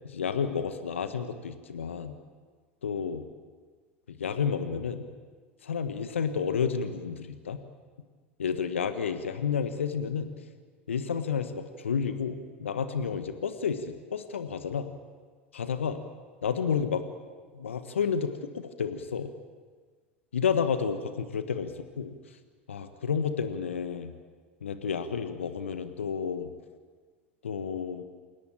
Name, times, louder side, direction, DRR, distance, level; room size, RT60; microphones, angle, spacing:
voice 1, 0.0-2.2 2.8-3.2 4.1-5.0 5.6-7.6 8.4-10.3 10.9-14.9 15.5-16.0 16.4-17.0 17.5-19.3 20.3-22.1 22.7-24.1 24.6-26.5 27.4-28.0, left 6 dB, 80° left, 9 dB, 1.4 m, -31 dB
28.0 x 18.0 x 8.8 m, 1.5 s
figure-of-eight pair, 80°, 7 cm